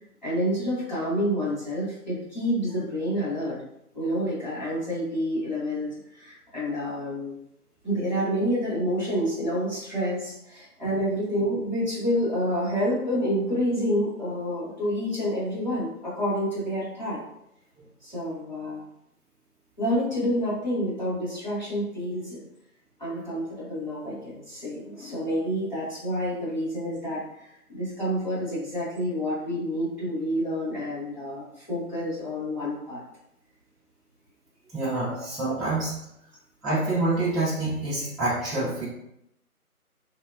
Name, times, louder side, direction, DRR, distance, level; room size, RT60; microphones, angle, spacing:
voice 1, 0.2-3.6 3.9-7.3 7.8-17.2 18.0-18.9 19.8-22.4 23.0-33.0, equal, 30° left, -10 dB, 0.8 m, -28 dB
voice 2, 34.7-36.0 36.6-38.9, right 2 dB, ahead, -10 dB, 0.4 m, -27 dB
2.8 x 2.1 x 2.2 m, 0.79 s
figure-of-eight pair, 165°, 45 cm